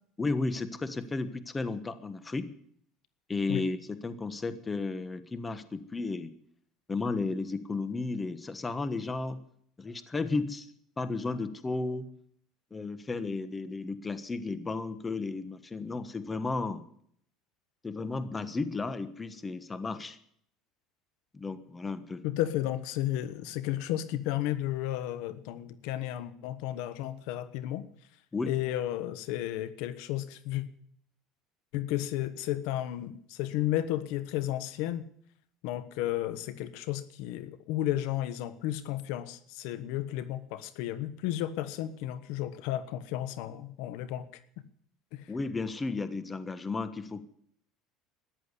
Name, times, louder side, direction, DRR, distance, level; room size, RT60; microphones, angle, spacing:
voice 1, 0.2-2.5 3.3-6.3 6.9-9.4 9.8-10.7 11.0-12.1 12.7-16.8 17.8-20.2 21.3-22.2 28.3-28.5 45.3-47.2, left 3 dB, 15° left, 13 dB, 1.3 m, -33 dB
voice 2, 22.2-27.8 28.4-30.6 31.7-35.0 35.6-44.3 45.1-45.2, left 13 dB, 75° left, 14 dB, 1.2 m, -33 dB
14.0 x 10.5 x 9.8 m, 0.65 s
supercardioid pair, 120°, 0 cm